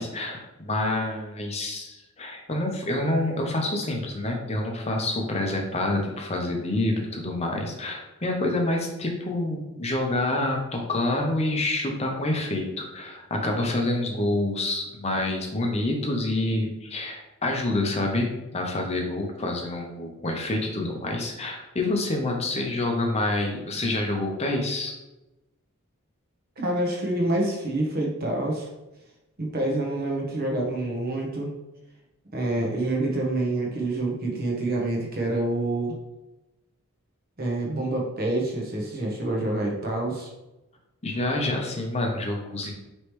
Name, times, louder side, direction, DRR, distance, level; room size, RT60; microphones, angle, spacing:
voice 1, 0.0-24.9 41.0-42.7, left 2 dB, 30° left, 1 dB, 0.7 m, -27 dB
voice 2, 26.6-28.7 29.4-31.5 32.3-35.9 37.4-40.3, right 2 dB, 40° right, -1 dB, 0.9 m, -27 dB
4.9 x 3.1 x 3.1 m, 1.0 s
head